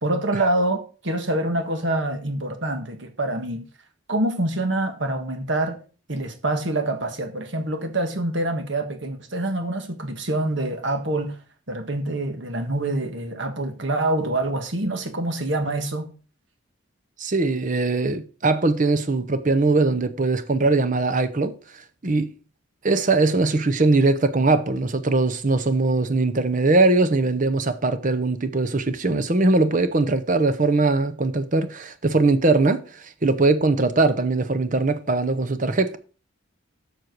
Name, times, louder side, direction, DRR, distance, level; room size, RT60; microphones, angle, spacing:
voice 1, 0.0-3.7 4.1-5.8 6.1-11.4 11.7-16.1, right 1 dB, 55° right, 1.5 m, -26 dB
voice 2, 17.2-22.3 22.8-36.0, right 3 dB, 40° right, 0.7 m, -21 dB
7.4 x 6.4 x 4.6 m
head